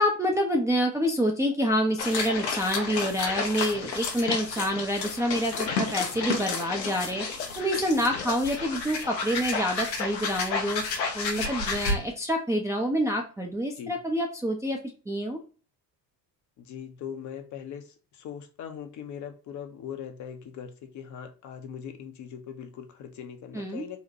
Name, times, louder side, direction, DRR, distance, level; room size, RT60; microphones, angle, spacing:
voice 1, 0.0-14.8 15.1-15.4 23.5-23.8, equal, 5° right, 0 dB, 0.4 m, -27 dB
sound 1, 2.0-11.9, left 4 dB, 85° left, 0.7 m, -31 dB
voice 2, 16.6-24.0, left 8 dB, 40° left, 7 dB, 0.6 m, -40 dB
4.1 x 2.1 x 2.7 m, 0.37 s
figure-of-eight pair, 60°, 50 cm